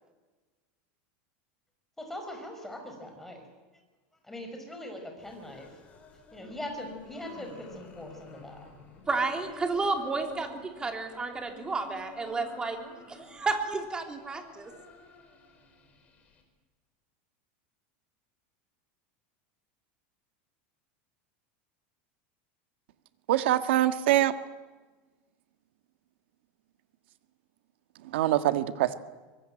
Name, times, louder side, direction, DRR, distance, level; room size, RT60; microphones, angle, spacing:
voice 1, 2.0-3.5 4.2-5.8 6.3-8.7, left 1 dB, 5° left, 3 dB, 5.6 m, -41 dB
sound 1, 5.2-16.4, left 3 dB, 25° left, 5.3 m, -50 dB
voice 2, 9.1-12.8 13.1-14.7, right 3 dB, 15° right, 4 dB, 3.3 m, -31 dB
voice 3, 23.3-24.3 28.1-29.0, right 13 dB, 75° right, 10 dB, 1.7 m, -24 dB
24.5 x 22.0 x 9.1 m, 1.3 s
supercardioid pair, 155°, 6 cm